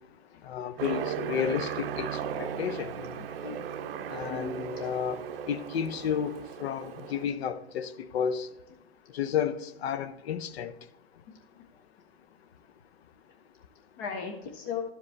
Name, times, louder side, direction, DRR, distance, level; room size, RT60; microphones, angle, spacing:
voice 1, 0.4-3.2 4.1-5.2 5.5-8.5 9.1-10.7, left 8 dB, 70° left, 0.7 m, -32 dB
Aircraft, 0.8-7.2, right 8 dB, 60° right, 0.6 m, -36 dB
voice 2, 3.3-4.9 14.0-14.8, left 6 dB, 20° left, 0.3 m, -38 dB
12.0 x 5.1 x 3.2 m
hypercardioid pair, 150°, 33 cm